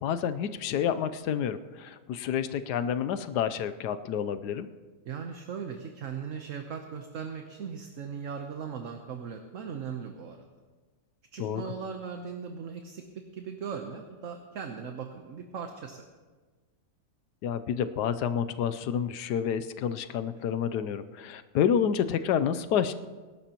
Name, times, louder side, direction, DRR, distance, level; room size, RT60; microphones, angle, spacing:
voice 1, 0.0-4.7 11.4-11.7 17.4-22.9, left 8 dB, 75° left, 11 dB, 1.2 m, -29 dB
voice 2, 5.1-10.5 11.3-16.0, right 6 dB, 55° right, 5 dB, 1.1 m, -38 dB
23.0 x 12.0 x 2.9 m, 1.4 s
omnidirectional pair, 1.9 m